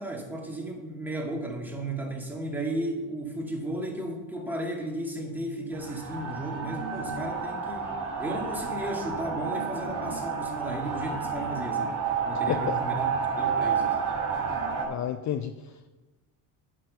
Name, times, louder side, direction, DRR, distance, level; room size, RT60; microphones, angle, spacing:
voice 1, 0.0-12.0 12.2-13.1 13.4-14.1, right 1 dB, 5° right, -1 dB, 2.3 m, -34 dB
sound 1, 5.7-14.9, right 6 dB, 50° right, 3.2 m, -30 dB
voice 2, 12.5-12.8 14.9-15.9, left 10 dB, 45° left, 9 dB, 0.5 m, -31 dB
8.6 x 6.3 x 6.7 m, 1.2 s
supercardioid pair, 95°, 40 cm